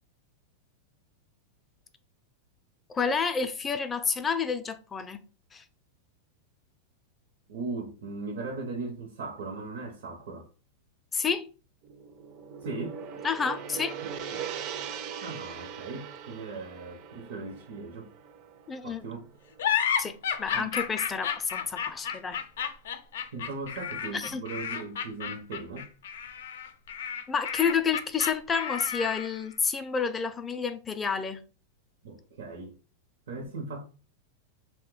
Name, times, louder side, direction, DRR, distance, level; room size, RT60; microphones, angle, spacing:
voice 1, 2.9-5.2 5.5-5.6 11.1-11.5 13.2-14.0 18.7-19.0 20.0-22.4 24.1-24.4 27.3-31.4, left 6 dB, 20° left, 0.4 m, -29 dB
voice 2, 7.5-10.5 12.6-13.0 15.2-18.1 18.8-19.3 20.5-20.7 23.3-25.9 32.0-32.7 33.3-33.8, right 3 dB, 80° right, 0.7 m, -38 dB
Gong, 11.8-20.2, right 7 dB, 45° right, 0.4 m, -41 dB
sound 1, 19.6-29.4, left 8 dB, 80° left, 0.4 m, -32 dB
2.6 x 2.1 x 3.8 m
supercardioid pair, 130°, 0 cm